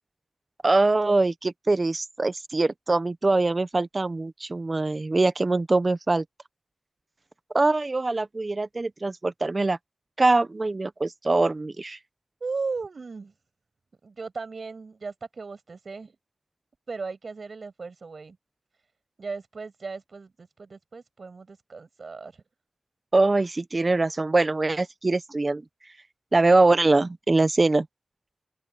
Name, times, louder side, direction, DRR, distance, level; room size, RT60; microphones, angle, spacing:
voice 1, 0.6-6.2 7.5-9.8 10.2-12.0 23.1-25.6 26.3-27.9, right 2 dB, 45° right, 1.1 m, -23 dB
voice 2, 12.4-13.3 14.0-16.2 16.9-18.4 19.2-22.4, right 4 dB, 70° right, 6.7 m, -36 dB
open air
cardioid pair, 55°, 0 cm